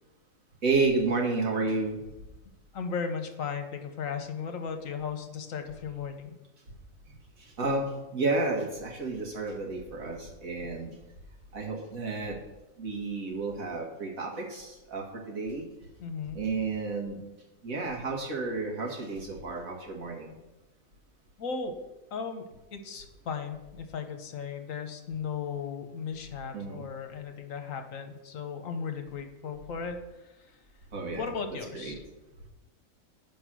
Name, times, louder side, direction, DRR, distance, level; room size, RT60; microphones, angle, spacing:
voice 1, 0.6-2.0 7.4-10.9 11.5-12.4 12.8-15.6 16.3-17.2 17.6-20.3 26.5-26.8 30.9-31.3 31.7-32.0, right 3 dB, 75° right, -1 dB, 2.1 m, -31 dB
voice 2, 2.7-6.3 16.0-16.4 21.4-21.8 22.1-30.0 30.2-30.3 31.1-32.0, left 6 dB, 70° left, 6 dB, 1.3 m, -36 dB
8.6 x 5.3 x 6.1 m, 1.0 s
omnidirectional pair, 1.5 m